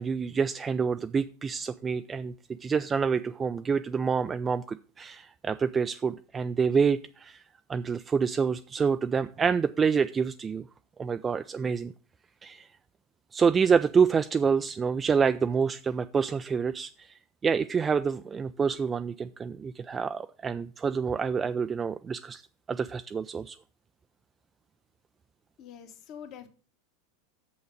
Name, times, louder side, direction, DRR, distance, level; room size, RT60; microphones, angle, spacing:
voice 1, 0.0-2.3 2.6-7.4 7.7-10.6 11.0-11.9 12.4-12.7 13.3-22.4 22.7-23.6, right 6 dB, 20° right, 11 dB, 0.3 m, -27 dB
voice 2, 25.6-26.5, left 8 dB, 45° left, 6 dB, 1.3 m, -45 dB
6.4 x 5.7 x 6.5 m, 0.39 s
figure-of-eight pair, 85°, 0 cm